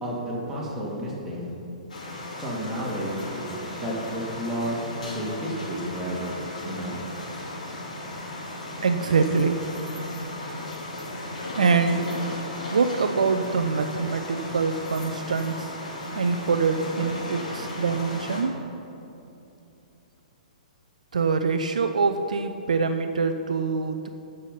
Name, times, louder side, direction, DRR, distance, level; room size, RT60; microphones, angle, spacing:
voice 1, 0.0-1.5 2.4-4.8 5.1-6.4 6.6-7.0, equal, 10° right, -5 dB, 2.4 m, -31 dB
sound 1, 1.9-18.4, left 1 dB, 65° left, 2.7 m, -35 dB
voice 2, 8.8-9.6 11.6-12.1 12.7-15.7 16.1-18.5 21.1-24.1, right 5 dB, 65° right, 7 dB, 0.5 m, -24 dB
14.0 x 5.5 x 5.7 m, 2.8 s
figure-of-eight pair, 115°, 4 cm